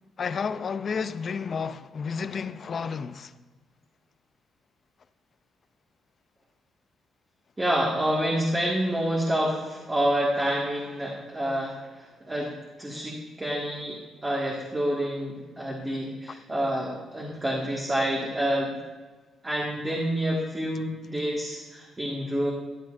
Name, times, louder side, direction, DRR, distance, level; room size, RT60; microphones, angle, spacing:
voice 1, 0.2-3.3, left 5 dB, 45° left, 0.5 m, -31 dB
voice 2, 7.6-12.5 12.8-18.8 19.4-22.5, equal, 20° right, 1.8 m, -28 dB
14.5 x 9.6 x 2.6 m
cardioid pair, 90°, 0 cm